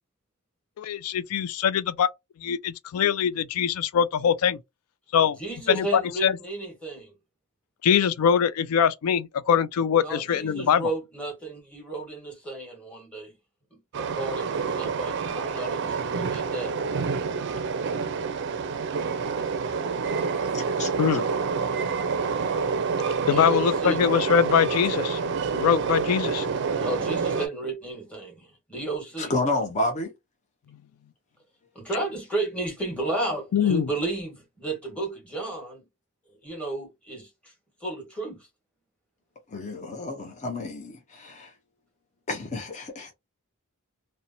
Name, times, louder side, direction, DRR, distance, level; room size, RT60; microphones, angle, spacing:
voice 1, 0.8-2.1 2.4-4.6 5.1-5.4 5.7-6.4 7.8-10.9 21.0-21.2 23.3-25.2 25.5-26.5 33.5-33.9, left 8 dB, 85° left, 0.4 m, -23 dB
voice 2, 5.4-7.2 10.0-13.3 13.7-16.8 23.2-24.0 26.8-29.3 31.7-35.8 36.4-37.5 37.8-38.5, right 2 dB, 5° left, 1.3 m, -33 dB
Train, 13.9-27.5, right 5 dB, 55° right, 0.4 m, -28 dB
voice 3, 20.5-20.9 29.2-30.1 39.5-41.5 42.3-43.1, left 2 dB, 35° left, 0.6 m, -30 dB
2.9 x 2.1 x 2.5 m
head